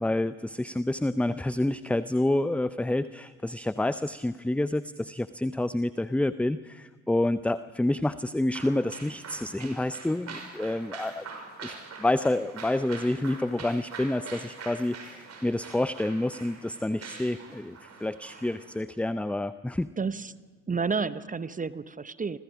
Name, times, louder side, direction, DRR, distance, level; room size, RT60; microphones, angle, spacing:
voice 1, 0.0-11.3 11.6-19.9, left 1 dB, 5° left, 14 dB, 0.7 m, -28 dB
sound 1, 8.5-18.8, right 4 dB, 50° right, 5.5 m, -44 dB
voice 2, 20.0-20.4 20.7-22.4, right 5 dB, 25° right, 15 dB, 1.0 m, -30 dB
30.0 x 26.0 x 5.1 m, 1.5 s
figure-of-eight pair, 45°, 34 cm